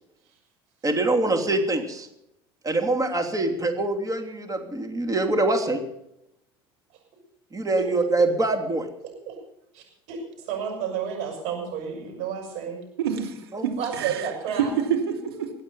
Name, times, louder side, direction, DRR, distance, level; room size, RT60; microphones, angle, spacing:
voice 1, 0.8-2.1 2.6-5.8 7.5-8.9 13.5-13.7, right 2 dB, 25° right, 4 dB, 3.1 m, -24 dB
voice 2, 9.7-12.8 13.8-14.7, right 7 dB, 60° right, 1 dB, 7.6 m, -31 dB
voice 3, 13.0-14.3 14.5-15.5, right 7 dB, 85° right, 2 dB, 2.7 m, -27 dB
23.0 x 8.7 x 5.6 m, 0.80 s
hypercardioid pair, 75°, 13 cm